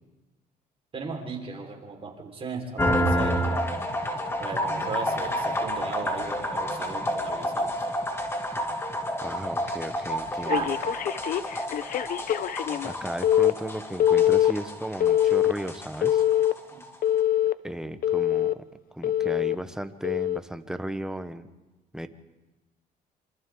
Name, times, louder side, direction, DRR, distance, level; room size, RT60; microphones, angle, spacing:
voice 1, 0.9-3.8 4.4-8.0 10.4-10.7 16.7-16.8, right 4 dB, 35° right, 1 dB, 4.5 m, -36 dB
sound 1, 2.8-16.9, equal, 15° left, 2.3 m, -30 dB
voice 2, 9.2-10.7 12.8-16.2 17.6-18.6 18.9-21.5 21.9-22.1, right 1 dB, 5° right, 9 dB, 1.1 m, -35 dB
Telephone, 10.5-13.0 13.2-13.5 14.0-14.5 15.0-15.5 16.0-16.5 17.0-17.5 18.0-18.5 19.0-19.5 20.0-20.4, left 11 dB, 55° left, 0.7 m, -23 dB
26.5 x 26.0 x 3.8 m, 1.1 s
cardioid pair, 110°, 17 cm